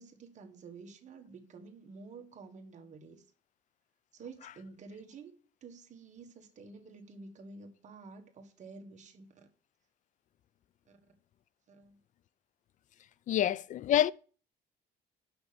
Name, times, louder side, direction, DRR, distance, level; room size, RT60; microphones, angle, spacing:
voice 1, 0.0-3.2 4.1-5.3 5.6-9.5 10.9-11.0 11.7-12.0, right 4 dB, 45° right, 1.6 m, -50 dB
voice 2, 13.3-14.1, left 11 dB, 50° left, 0.4 m, -27 dB
6.0 x 5.4 x 6.9 m
cardioid pair, 110°, 17 cm